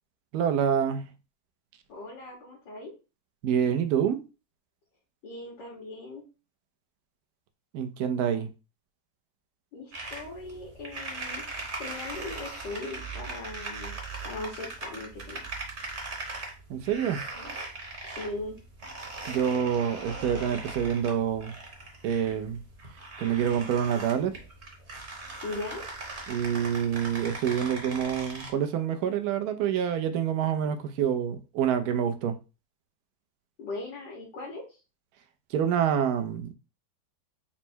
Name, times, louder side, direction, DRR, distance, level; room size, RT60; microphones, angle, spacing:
voice 1, 0.3-1.1 3.4-4.2 7.7-8.5 16.7-17.3 19.3-21.5 22.0-22.6 23.2-24.3 26.3-32.4 35.5-36.5, right 8 dB, 70° right, 1.0 m, -27 dB
voice 2, 1.9-2.9 5.2-6.2 9.7-11.4 11.8-13.9 14.2-15.4 18.0-18.6 25.4-25.8 33.6-34.8, left 2 dB, 90° left, 1.8 m, -39 dB
sound 1, 9.9-28.5, right 3 dB, 35° right, 1.1 m, -40 dB
4.4 x 2.1 x 4.3 m
omnidirectional pair, 1.8 m